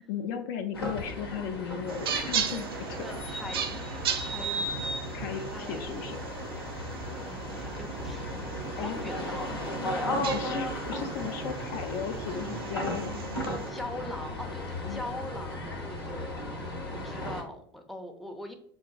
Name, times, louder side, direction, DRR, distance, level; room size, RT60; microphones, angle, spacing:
voice 1, 0.1-3.0 5.1-6.2 8.8-9.0 10.0-13.3 14.8-15.0, left 8 dB, 55° left, 7 dB, 0.4 m, -36 dB
sound 1, 0.7-17.4, left 1 dB, 80° left, 0.7 m, -35 dB
sound 2, 1.9-13.7, right 7 dB, 70° right, 0.4 m, -37 dB
voice 2, 2.8-4.7 5.3-5.9 7.2-8.3 8.8-9.6 13.6-18.5, left 1 dB, ahead, 3 dB, 0.5 m, -42 dB
5.9 x 2.5 x 2.3 m, 0.66 s
figure-of-eight pair, 75°, 13 cm